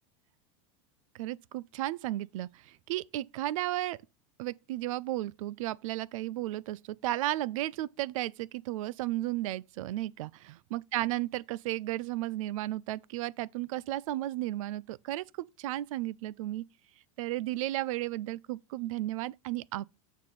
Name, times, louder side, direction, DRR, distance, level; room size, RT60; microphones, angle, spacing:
voice 1, 1.1-4.0 4.4-16.6 17.2-19.8, right 15 dB, 80° right, 0.4 m, -34 dB
7.3 x 4.2 x 6.4 m
supercardioid pair, 145°, 17 cm